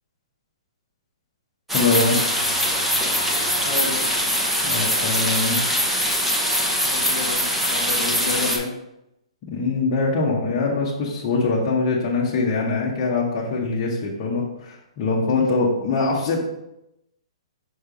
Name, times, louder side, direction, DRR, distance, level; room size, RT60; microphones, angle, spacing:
voice 1, 1.7-2.2 4.6-5.6 9.5-16.4, left 3 dB, 30° left, -6 dB, 1.0 m, -23 dB
sound 1, 1.7-8.6, equal, 5° right, 0.6 m, -22 dB
voice 2, 3.6-4.1 6.9-8.7, left 4 dB, 50° left, 1 dB, 1.4 m, -30 dB
5.6 x 3.3 x 5.1 m, 0.85 s
hypercardioid pair, 165°, 3 cm